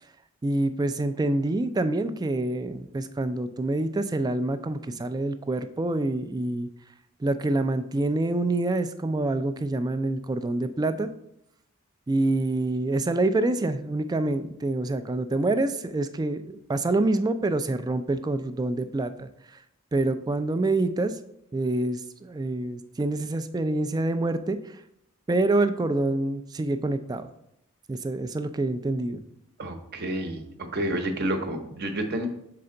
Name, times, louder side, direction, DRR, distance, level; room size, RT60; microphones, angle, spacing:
voice 1, 0.4-6.7 7.2-11.1 12.1-19.3 19.9-21.2 21.5-24.7 25.3-27.3 27.9-29.2, right 2 dB, 20° right, 10 dB, 0.3 m, -26 dB
voice 2, 29.6-32.3, right 1 dB, 45° right, 5 dB, 0.8 m, -30 dB
6.8 x 4.3 x 3.8 m, 0.77 s
head